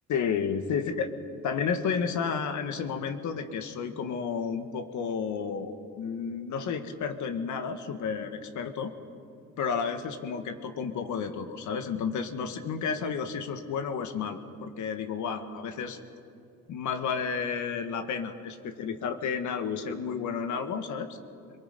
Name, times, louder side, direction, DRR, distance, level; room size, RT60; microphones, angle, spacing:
voice 1, 0.1-1.1 1.4-8.9 9.6-16.0 16.7-21.2, left 6 dB, 75° left, 8 dB, 1.7 m, -31 dB
24.0 x 22.5 x 5.4 m, 2.5 s
cardioid pair, 90°, 30 cm